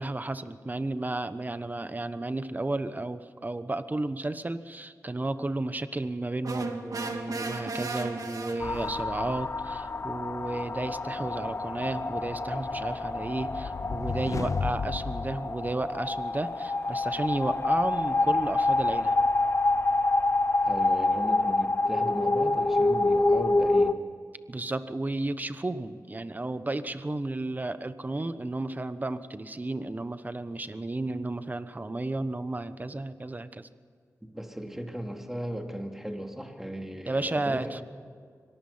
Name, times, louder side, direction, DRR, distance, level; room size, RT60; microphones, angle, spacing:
voice 1, 0.0-19.1 24.5-33.7 37.1-37.8, right 2 dB, 30° right, 12 dB, 1.2 m, -33 dB
sound 1, 6.4-9.1, right 3 dB, 70° right, 2.1 m, -35 dB
sound 2, 8.6-23.9, left 2 dB, 40° left, 1.0 m, -27 dB
sound 3, 12.8-16.4, left 5 dB, 60° left, 0.4 m, -35 dB
voice 2, 20.6-24.0 34.3-37.8, equal, 5° right, 3 dB, 2.6 m, -37 dB
24.5 x 18.5 x 5.7 m, 2.1 s
cardioid pair, 65°, 6 cm